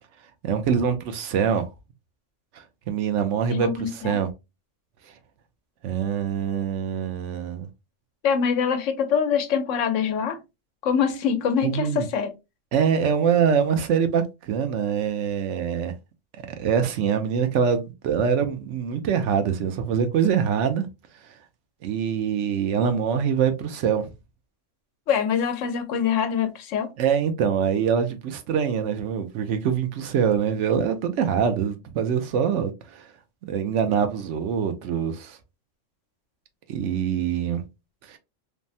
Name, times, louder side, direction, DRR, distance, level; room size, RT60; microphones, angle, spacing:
voice 1, 0.4-1.7 2.5-4.3 5.1-5.2 5.8-7.7 11.6-12.1 12.7-15.9 16.5-20.9 21.2-21.3 21.8-24.1 27.0-33.1 33.4-35.4 36.7-37.6 38.0-38.2, right 7 dB, 75° right, 0.9 m, -24 dB
voice 2, 3.5-4.2 8.2-10.4 10.8-12.3 25.1-26.9, left 7 dB, 85° left, 1.0 m, -24 dB
3.3 x 2.0 x 2.6 m
omnidirectional pair, 1.3 m